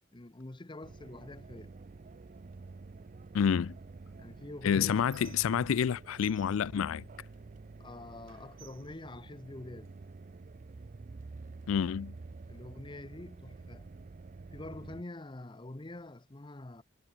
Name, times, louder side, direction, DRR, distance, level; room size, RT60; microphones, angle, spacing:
voice 1, 0.1-1.7 4.2-5.2 7.8-9.9 12.5-13.9 14.5-16.8, left 2 dB, 20° left, 0.8 m, -46 dB
sound 1, 0.8-15.0, right 3 dB, 40° right, 0.4 m, -49 dB
voice 2, 3.3-3.7 4.6-7.0 11.7-12.1, left 7 dB, 75° left, 0.4 m, -28 dB
Squeak, 4.1-5.9 6.2-7.9 8.3-10.0 10.7-10.9 11.2-12.2, right 9 dB, 65° right, 6.4 m, -60 dB
head